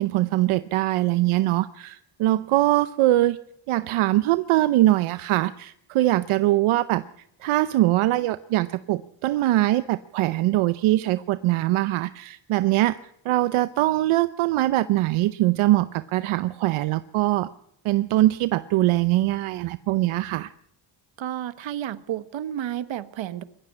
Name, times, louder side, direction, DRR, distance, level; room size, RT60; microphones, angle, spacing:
voice 1, 0.0-3.4 3.7-7.0 7.4-13.0 13.2-17.5 17.8-20.5, right 16 dB, 85° right, 14 dB, 0.7 m, -22 dB
voice 2, 21.2-23.4, right 11 dB, 70° right, 13 dB, 1.3 m, -31 dB
22.0 x 15.0 x 8.7 m, 0.76 s
cardioid pair, 90°, 48 cm